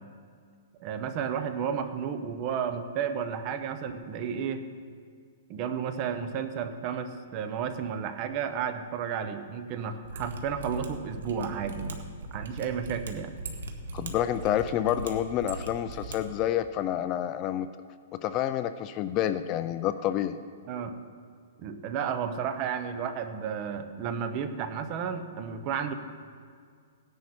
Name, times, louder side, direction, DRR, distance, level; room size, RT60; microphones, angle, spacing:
voice 1, 0.8-4.7 5.5-12.0 12.3-13.3 20.7-21.0 21.6-25.9, right 7 dB, 30° right, 9 dB, 0.9 m, -32 dB
Mechanisms, 10.0-16.2 16.4-16.5, right 3 dB, 85° right, 1.6 m, -39 dB
voice 2, 13.9-17.7 18.2-20.4, left 11 dB, 25° left, 11 dB, 0.4 m, -28 dB
17.5 x 10.5 x 4.4 m, 2.1 s
hypercardioid pair, 160°, 0 cm